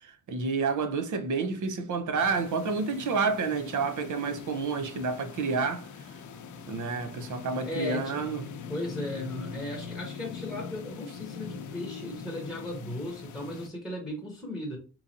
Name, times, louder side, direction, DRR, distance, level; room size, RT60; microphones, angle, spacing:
voice 1, 0.0-5.9 6.7-8.4, right 4 dB, 75° right, 0.7 m, -29 dB
sound 1, 2.2-13.7, left 5 dB, 75° left, 0.6 m, -42 dB
voice 2, 7.6-8.2 8.7-14.8, left 1 dB, ahead, 0.9 m, -36 dB
3.8 x 3.0 x 2.6 m
wide cardioid pair, 170°, 31 cm